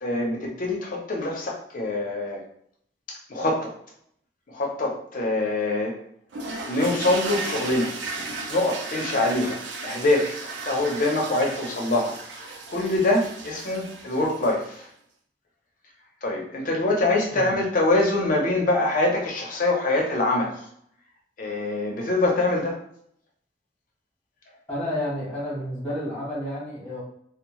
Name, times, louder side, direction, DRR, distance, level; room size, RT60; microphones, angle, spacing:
voice 1, 0.0-2.4 3.1-3.7 4.5-6.0 6.7-7.9 8.5-14.9 16.2-20.6 21.4-22.8, left 2 dB, 50° left, 0 dB, 0.6 m, -24 dB
sound 1, 6.3-14.8, right 3 dB, 85° right, 0.5 m, -35 dB
voice 2, 24.7-27.0, left 1 dB, 10° left, -7 dB, 1.1 m, -30 dB
2.6 x 2.0 x 3.0 m, 0.69 s
head